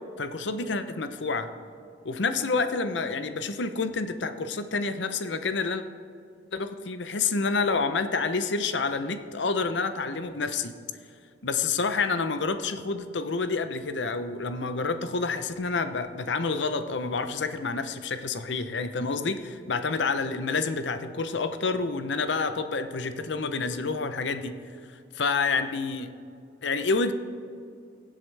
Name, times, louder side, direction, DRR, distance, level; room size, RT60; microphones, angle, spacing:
voice 1, 0.2-1.5 2.0-5.8 6.5-10.7 11.4-24.6 25.1-26.1 26.6-27.1, left 4 dB, 70° left, 9 dB, 0.7 m, -28 dB
21.5 x 7.5 x 3.4 m, 2.3 s
head